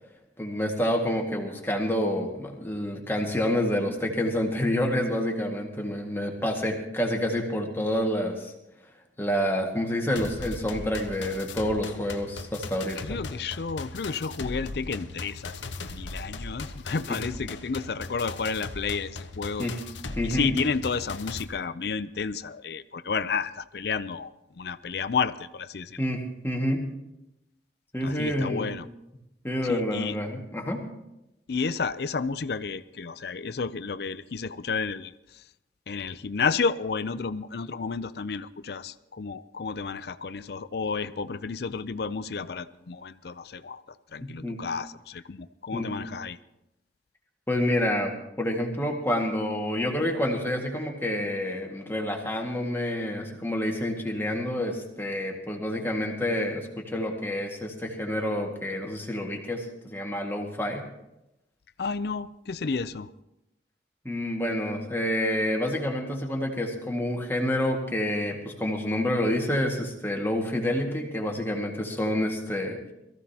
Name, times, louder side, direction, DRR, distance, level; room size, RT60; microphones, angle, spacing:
voice 1, 0.4-8.5 9.2-13.2 17.1-17.2 19.6-19.8 20.2-20.5 26.0-26.9 27.9-28.7 29.4-30.8 44.2-44.6 45.7-45.9 47.5-60.9 64.1-72.8, left 1 dB, 10° left, 0 dB, 1.8 m, -28 dB
sound 1, 10.2-21.4, left 3 dB, 80° left, 0.9 m, -38 dB
voice 2, 13.0-19.7 20.2-24.3 24.6-26.0 28.0-28.8 29.6-30.2 31.5-35.4 35.9-43.8 44.1-46.4 61.8-63.1, left 5 dB, 60° left, 15 dB, 0.5 m, -31 dB
22.0 x 15.0 x 2.9 m, 0.89 s
head